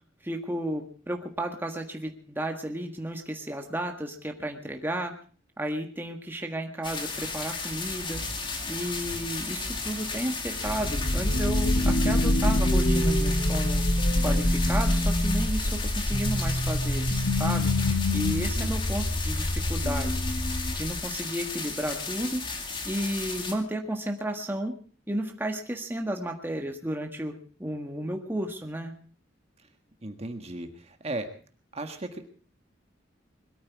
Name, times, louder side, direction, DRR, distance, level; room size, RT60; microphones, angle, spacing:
voice 1, 0.2-5.1 5.6-8.2 8.7-13.8 14.2-17.7 18.1-20.2 20.7-22.4 22.8-24.8 25.1-27.3 27.6-28.9, right 1 dB, 10° right, 2 dB, 1.6 m, -33 dB
sound 1, 6.8-23.5, left 4 dB, 25° left, 2.1 m, -35 dB
sound 2, 10.5-21.2, left 1 dB, 65° left, 1.7 m, -25 dB
voice 2, 30.0-31.3 31.7-32.3, right 2 dB, 35° right, 6 dB, 1.6 m, -35 dB
21.5 x 13.5 x 4.7 m, 0.42 s
head